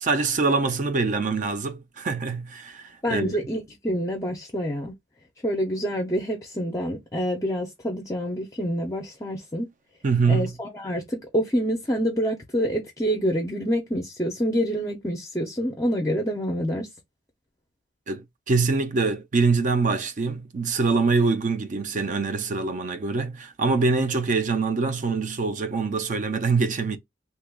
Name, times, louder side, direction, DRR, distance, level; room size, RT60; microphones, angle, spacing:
voice 1, 0.0-3.4 10.0-10.5 18.1-27.0, right 4 dB, 40° right, 0.4 m, -24 dB
voice 2, 3.0-4.9 5.4-9.7 10.3-16.9, equal, 15° left, 0.5 m, -27 dB
2.9 x 2.3 x 3.5 m
head